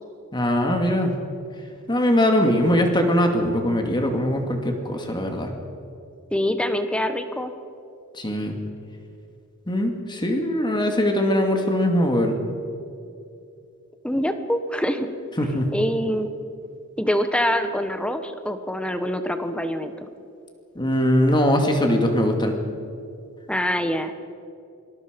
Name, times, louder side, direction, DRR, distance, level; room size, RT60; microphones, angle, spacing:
voice 1, 0.3-1.2 1.9-5.5 8.2-8.6 9.7-12.3 15.4-15.7 20.8-22.5, equal, 20° left, 3 dB, 2.4 m, -21 dB
voice 2, 6.3-7.5 14.0-15.1 15.7-16.3 17.0-20.1 23.5-24.1, equal, 5° left, 8 dB, 1.2 m, -25 dB
25.0 x 20.0 x 5.3 m, 2.6 s
head